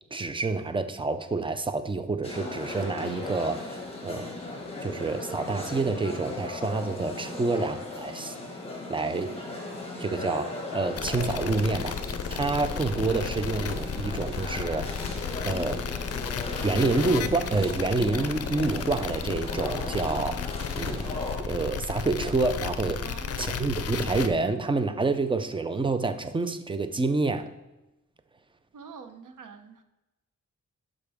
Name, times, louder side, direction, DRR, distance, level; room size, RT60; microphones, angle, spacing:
voice 1, 0.1-4.3 4.8-8.3 8.9-9.3 10.0-14.9 15.4-15.8 16.6-20.4 20.7-21.1 21.5-23.0 23.4-27.5, right 3 dB, 15° right, 10 dB, 0.4 m, -28 dB
sound 1, 2.2-21.4, left 2 dB, 20° left, 1.4 m, -37 dB
voice 2, 7.3-7.6 23.0-23.6 28.7-29.8, right 5 dB, 85° right, 7 dB, 0.9 m, -46 dB
sound 2, 11.0-24.3, left 7 dB, 50° left, 0.5 m, -33 dB
11.5 x 4.9 x 3.5 m, 1.0 s
wide cardioid pair, 170°, 31 cm